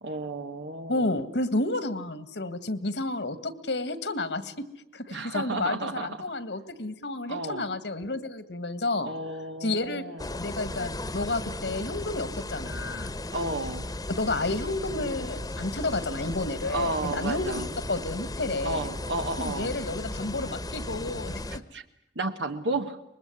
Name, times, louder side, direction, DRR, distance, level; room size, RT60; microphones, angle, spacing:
voice 1, 0.0-1.2 5.1-6.2 7.3-7.6 9.0-10.2 13.3-13.9 16.7-17.7 18.6-19.7 21.7-21.8 22.1-23.0, right 2 dB, 85° right, 7 dB, 1.3 m, -32 dB
voice 2, 0.9-4.6 4.9-9.1 9.6-10.0 10.4-13.1 14.1-18.9 19.4-21.4, left 2 dB, 75° left, 13 dB, 1.8 m, -31 dB
sound 1, 10.2-21.6, left 1 dB, 20° left, 1.1 m, -36 dB
24.5 x 21.5 x 9.7 m, 0.80 s
head